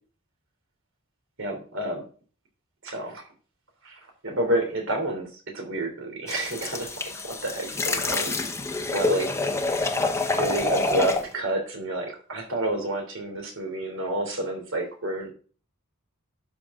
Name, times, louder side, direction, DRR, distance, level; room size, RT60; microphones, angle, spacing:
voice 1, 1.4-2.0 2.8-3.2 3.8-8.3 8.8-9.3 9.7-9.8 10.4-15.3, right 1 dB, 65° right, 3 dB, 3.2 m, -29 dB
sound 1, 6.3-11.3, left 3 dB, 15° left, 0.9 m, -27 dB
12.0 x 6.8 x 3.8 m, 0.40 s
head